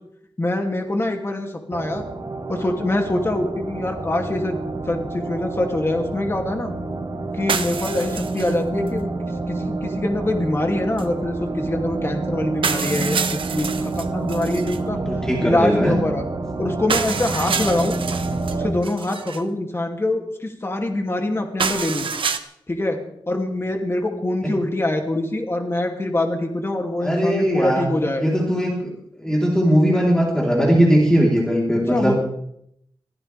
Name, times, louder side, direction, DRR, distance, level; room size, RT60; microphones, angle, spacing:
voice 1, 0.4-2.0 2.5-4.6 4.9-6.7 7.3-9.1 9.5-15.0 15.4-16.2 16.6-18.0 18.5-22.1 22.7-23.0 23.3-28.2 31.9-32.2, left 1 dB, 30° left, 2 dB, 2.8 m, -24 dB
sound 1, 1.7-18.7, right 3 dB, 55° right, 2.4 m, -28 dB
sound 2, 7.5-8.6 8.9-9.0 11.0-11.1 12.0-12.1 12.6-14.8 16.9-18.6 18.8-19.4 21.6-22.4, right 6 dB, 90° right, 1.1 m, -27 dB
voice 2, 14.9-16.0 18.2-18.4 24.4-24.5 27.0-27.9 28.2-28.9 29.2-32.2, equal, 5° left, -3 dB, 3.9 m, -19 dB
24.0 x 15.5 x 3.5 m, 0.72 s
wide cardioid pair, 100°, 9 cm